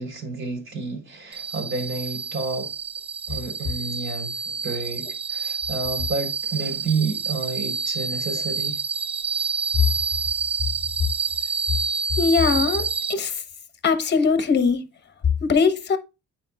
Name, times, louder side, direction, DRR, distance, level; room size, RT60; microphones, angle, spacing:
voice 1, 0.0-2.7 3.3-8.8, right 3 dB, 40° right, 3.7 m, -30 dB
sound 1, 1.3-13.1, right 5 dB, 20° right, 0.4 m, -28 dB
voice 2, 12.2-13.4 13.8-14.8 15.4-16.0, left 5 dB, 35° left, 1.1 m, -21 dB
9.4 x 4.7 x 2.3 m
cardioid pair, 90°, 30 cm